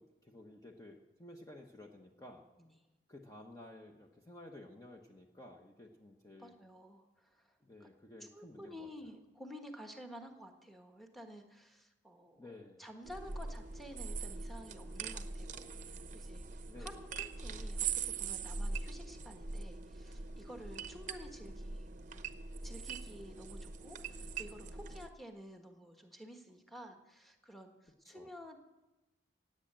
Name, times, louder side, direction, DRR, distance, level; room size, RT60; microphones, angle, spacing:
voice 1, 0.0-2.4 3.1-6.5 7.6-9.1 12.4-12.8 16.6-17.0 28.0-28.3, left 1 dB, 20° left, 1 dB, 1.1 m, -54 dB
voice 2, 6.4-7.9 8.2-12.5 12.8-16.4 16.8-21.9 22.6-28.6, equal, ahead, 4 dB, 1.4 m, -52 dB
sound 1, 13.0-25.1, right 5 dB, 40° right, 0.8 m, -42 dB
17.0 x 8.9 x 7.6 m, 1.0 s
head